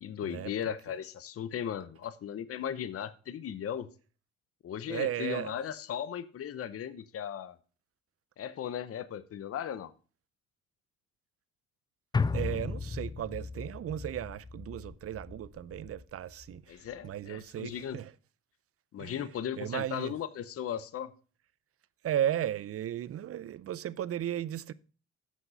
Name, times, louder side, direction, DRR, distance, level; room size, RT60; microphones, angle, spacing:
voice 1, 0.0-3.9 4.6-7.6 8.4-9.9 16.7-18.0 18.9-21.1, left 9 dB, 50° left, 0.7 m, -37 dB
voice 2, 4.9-5.6 12.3-18.1 19.0-19.3 19.6-20.1 22.0-24.7, right 11 dB, 50° right, 0.5 m, -35 dB
sound 1, 12.1-16.6 16.9-17.0, left 4 dB, 15° left, 0.3 m, -35 dB
8.2 x 6.0 x 5.5 m
cardioid pair, 90°, 30 cm